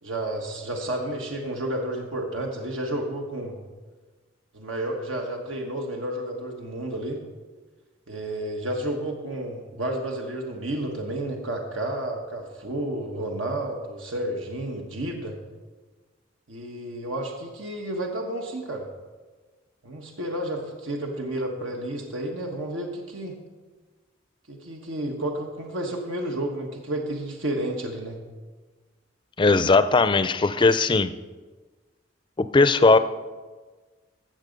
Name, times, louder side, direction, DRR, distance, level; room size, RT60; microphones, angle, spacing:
voice 1, 0.0-3.6 4.5-7.2 8.1-15.3 16.5-18.9 19.8-23.4 24.5-28.2, right 1 dB, 85° right, 1 dB, 1.3 m, -31 dB
voice 2, 29.4-31.1 32.4-33.0, left 3 dB, 25° left, 13 dB, 0.4 m, -18 dB
15.0 x 6.8 x 5.2 m, 1.3 s
head